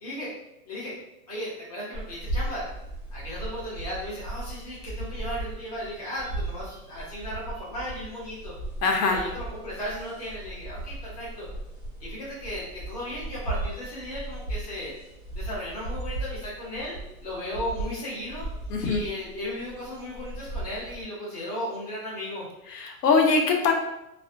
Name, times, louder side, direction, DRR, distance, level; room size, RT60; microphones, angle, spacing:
voice 1, 0.0-0.3 0.7-1.0 1.3-2.7 3.1-8.5 9.1-11.5 12.0-14.9 15.3-17.0 17.2-18.5 18.8-22.5, equal, 30° left, -8 dB, 0.3 m, -35 dB
sound 1, 1.9-21.0, right 2 dB, 20° right, 0.6 m, -37 dB
voice 2, 8.8-9.2 18.7-19.0 22.7-23.7, left 4 dB, 85° left, 2 dB, 0.7 m, -22 dB
2.4 x 2.0 x 2.5 m, 0.90 s
supercardioid pair, 175°, 46 cm